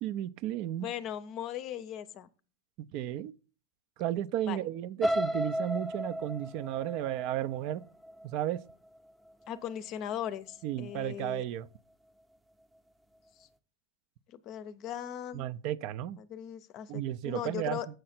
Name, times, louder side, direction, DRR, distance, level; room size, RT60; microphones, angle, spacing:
voice 1, 0.0-0.9 2.9-3.3 4.0-7.8 8.2-8.6 10.6-11.7 15.3-16.2 16.9-17.8, right 12 dB, 50° right, 0.4 m, -33 dB
voice 2, 0.8-2.3 4.4-4.6 9.5-11.4 14.3-15.5 16.2-17.9, left 10 dB, 45° left, 0.6 m, -38 dB
sound 1, 5.0-9.0 9.4-9.8 10.1-10.2, equal, 10° right, 0.7 m, -34 dB
7.7 x 5.7 x 4.3 m
hypercardioid pair, 125°, 0 cm